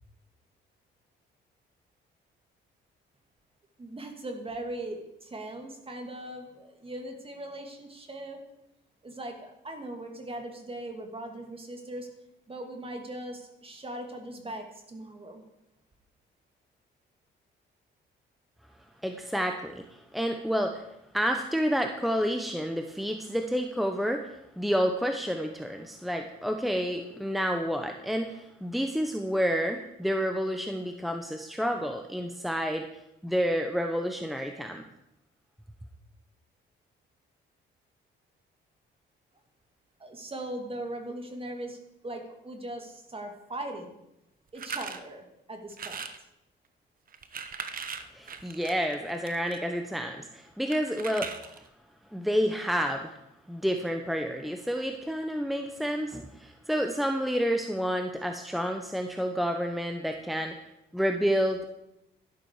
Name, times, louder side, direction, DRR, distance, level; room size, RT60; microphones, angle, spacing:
voice 1, 3.8-8.4 9.0-12.1 12.5-15.4 40.0-41.8 42.0-43.9 44.5-46.1, right 1 dB, 30° right, 4 dB, 2.7 m, -39 dB
voice 2, 19.0-20.8 21.1-32.9 33.2-34.8 48.1-51.5 52.1-53.2 53.5-60.6 60.9-61.6, equal, ahead, 5 dB, 1.0 m, -29 dB
sound 1, 44.5-45.0 45.7-46.2 47.1-49.6 50.7-51.7, right 6 dB, 45° right, 1.2 m, -39 dB
12.0 x 12.0 x 4.9 m, 0.85 s
cardioid pair, 90°, 20 cm